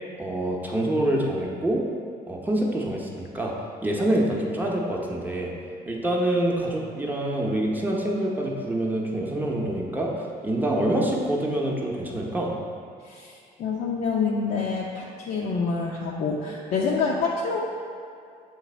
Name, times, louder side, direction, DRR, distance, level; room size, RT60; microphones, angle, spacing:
voice 1, 0.2-1.8 2.3-3.5 3.8-5.5 5.9-12.5, right 1 dB, 10° right, -2 dB, 0.8 m, -26 dB
voice 2, 13.0-17.6, left 4 dB, 55° left, -3 dB, 0.6 m, -27 dB
7.1 x 3.2 x 4.3 m, 2.3 s
cardioid pair, 110°, 17 cm